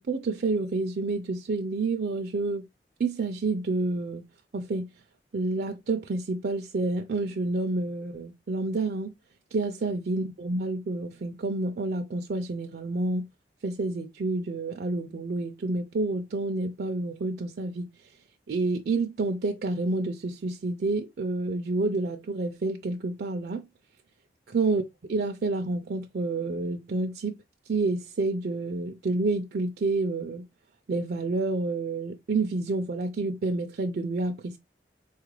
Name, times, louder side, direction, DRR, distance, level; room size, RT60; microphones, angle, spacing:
voice 1, 0.0-2.6 3.0-4.2 4.5-4.9 5.3-9.1 9.5-13.3 13.6-17.9 18.5-23.6 24.5-24.8 25.1-27.4 27.7-30.5 30.9-34.6, right 3 dB, 55° right, 0.4 m, -29 dB
4.2 x 2.4 x 3.1 m
head